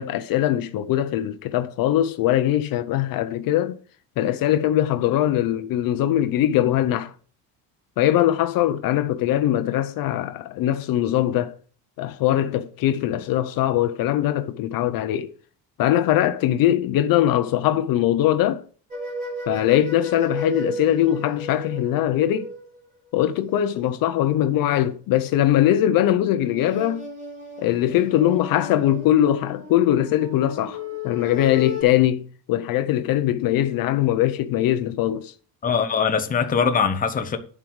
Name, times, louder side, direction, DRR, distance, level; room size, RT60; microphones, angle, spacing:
voice 1, 0.0-3.8 4.2-7.1 8.0-11.5 12.0-15.3 15.8-18.6 19.5-22.5 23.1-27.1 27.6-30.8 31.0-35.3, left 12 dB, 55° left, 0.7 m, -21 dB
sound 1, 18.9-22.8 26.1-31.8, left 1 dB, 20° right, 3.3 m, -34 dB
voice 2, 35.6-37.4, left 6 dB, 20° left, 0.9 m, -22 dB
11.0 x 4.7 x 7.9 m
cardioid pair, 175°, 41 cm